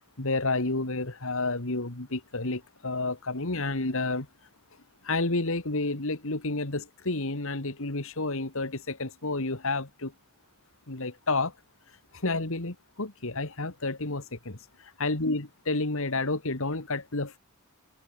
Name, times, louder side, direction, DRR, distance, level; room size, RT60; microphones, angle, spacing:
voice 1, 0.2-4.3 5.1-10.1 10.9-11.5 12.2-14.6 15.0-17.4, left 2 dB, 65° left, 2.2 m, -30 dB
head